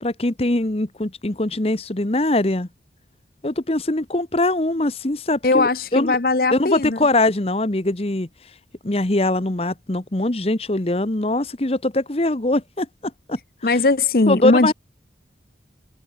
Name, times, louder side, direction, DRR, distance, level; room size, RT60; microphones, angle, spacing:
voice 1, 0.0-2.7 3.4-6.2 6.5-8.3 8.8-12.9 13.3-13.4 14.3-14.7, left 2 dB, 35° left, 1.1 m, -22 dB
voice 2, 5.4-7.0 13.6-14.7, left 3 dB, 55° left, 0.9 m, -19 dB
open air
head